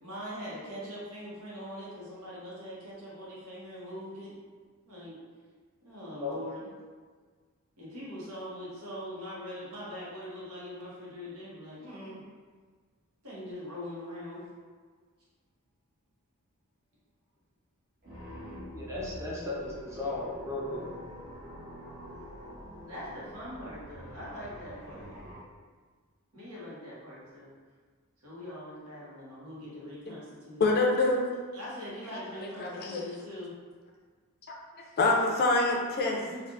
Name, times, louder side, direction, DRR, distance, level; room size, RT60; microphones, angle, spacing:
voice 1, 0.0-4.4 4.8-5.2 5.8-6.7 7.8-12.2 13.2-14.4 22.8-25.1 26.3-27.5 28.2-30.7 31.5-33.5 36.3-36.4, equal, 75° right, -8 dB, 1.2 m, -42 dB
sound 1, 18.0-25.4, equal, 45° right, 1.0 m, -46 dB
voice 2, 18.7-20.9, left 2 dB, 15° right, -5 dB, 0.5 m, -35 dB
voice 3, 30.6-31.2 32.6-33.0 34.5-34.6 35.0-36.2, left 2 dB, 45° left, 0 dB, 0.4 m, -25 dB
3.4 x 2.4 x 2.5 m, 1.5 s
head